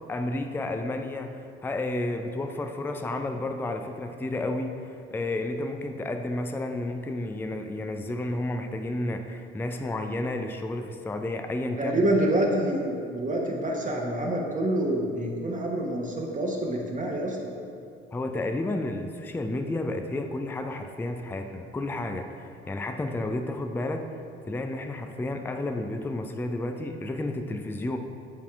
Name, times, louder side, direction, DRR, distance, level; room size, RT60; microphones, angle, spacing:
voice 1, 0.1-12.2 18.1-24.1 24.5-28.0, left 2 dB, 5° left, 6 dB, 0.5 m, -31 dB
voice 2, 11.8-17.5, right 1 dB, 25° right, -1 dB, 1.1 m, -27 dB
9.7 x 4.2 x 4.7 m, 2.4 s
figure-of-eight pair, 55°, 32 cm